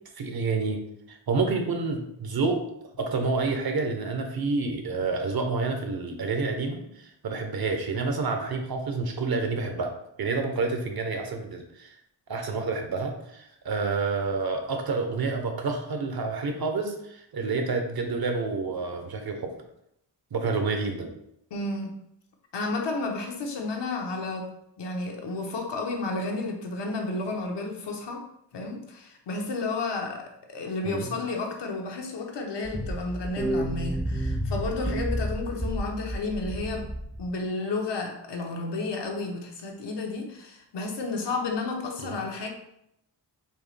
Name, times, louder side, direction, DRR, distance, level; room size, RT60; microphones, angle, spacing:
voice 1, 0.2-0.8 1.1-2.6 3.0-9.9 10.2-11.9 12.3-19.5 20.3-21.1 30.8-31.1 42.0-42.2, right 4 dB, 55° right, 4 dB, 0.8 m, -29 dB
voice 2, 21.5-22.0 22.5-24.5 24.8-28.2 28.5-36.9 37.2-42.5, left 3 dB, 70° left, 2 dB, 0.9 m, -32 dB
sound 1, 32.6-37.3, equal, ahead, 0.5 m, -30 dB
4.5 x 2.7 x 3.2 m, 0.77 s
wide cardioid pair, 130°, 43 cm